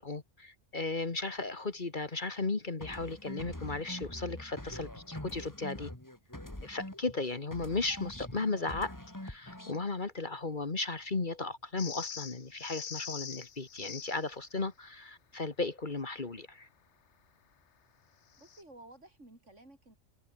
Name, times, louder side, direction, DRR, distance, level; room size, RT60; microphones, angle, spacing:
voice 1, 0.0-5.9 6.6-9.0 9.2-16.7, left 3 dB, 40° left, 1.8 m, -35 dB
sound 1, 2.8-7.2 7.5-9.9, left 1 dB, 15° left, 3.2 m, -44 dB
sound 2, 11.8-14.3 18.3-18.6, left 7 dB, 65° left, 1.4 m, -43 dB
voice 2, 18.4-20.0, right 2 dB, 70° right, 6.8 m, -54 dB
omnidirectional pair, 1.3 m